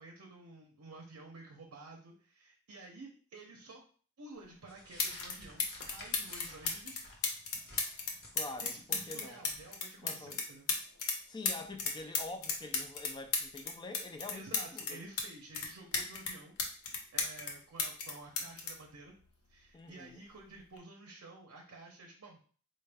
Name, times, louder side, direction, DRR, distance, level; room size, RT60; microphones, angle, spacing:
voice 1, 0.0-3.8 4.2-7.1 8.6-10.7 14.3-19.1 19.5-22.4, right 2 dB, 65° right, 0.6 m, -52 dB
sound 1, 4.5-4.6 5.0-5.3 5.6-11.2 11.4-15.3 15.5-17.5 17.8-19.6 20.6-20.8, left 5 dB, 70° left, 0.7 m, -35 dB
sound 2, 4.7-9.8, left 1 dB, 45° left, 1.0 m, -53 dB
voice 2, 8.3-9.4 10.0-10.4 11.3-15.0 19.7-20.2, left 2 dB, 20° left, 0.4 m, -46 dB
4.3 x 2.2 x 3.4 m
head